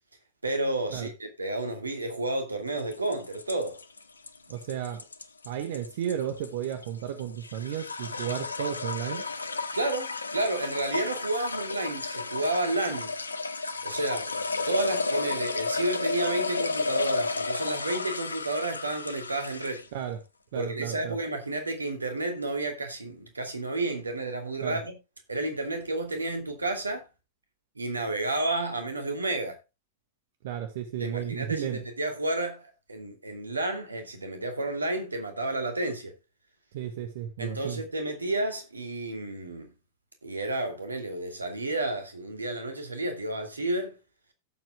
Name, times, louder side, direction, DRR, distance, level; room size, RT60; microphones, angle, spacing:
voice 1, 0.4-3.8 9.7-13.1 13.8-14.3 14.6-19.9 20.5-24.9 25.3-27.1 27.8-29.6 31.0-36.1 37.4-39.7 40.2-44.0, right 2 dB, 80° right, 2.5 m, -31 dB
sound 1, 2.8-20.0, left 3 dB, 75° left, 0.9 m, -32 dB
voice 2, 4.5-5.0 5.4-9.2 19.9-20.2 20.5-21.2 24.6-24.8 30.4-31.8 36.7-37.8, right 10 dB, 55° right, 1.6 m, -33 dB
17.0 x 7.7 x 2.3 m
figure-of-eight pair, 90°, 0 cm